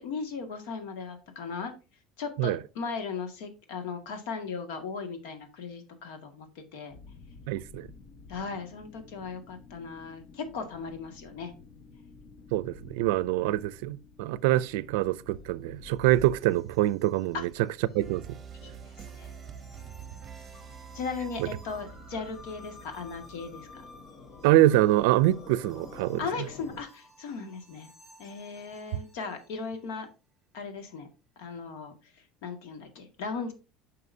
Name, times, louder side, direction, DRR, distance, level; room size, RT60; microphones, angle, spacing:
voice 1, 0.0-1.7 2.2-7.0 8.3-11.5 13.4-13.5 17.3-17.5 18.6-19.3 20.9-23.8 26.2-27.9 28.2-30.1 30.5-31.1 31.4-31.9 32.4-33.5, left 5 dB, 80° left, 1.9 m, -37 dB
sound 1, 6.9-26.8, left 4 dB, 55° left, 1.2 m, -51 dB
voice 2, 7.5-7.9 12.5-17.7 17.9-18.4 21.4-21.5 24.4-26.3 28.9-29.0, right 15 dB, 80° right, 0.4 m, -25 dB
sound 2, 15.3-29.9, left 1 dB, 15° left, 2.8 m, -54 dB
sound 3, 18.0-24.7, right 8 dB, 25° right, 0.9 m, -47 dB
9.5 x 5.5 x 2.7 m
cardioid pair, 140°, 0 cm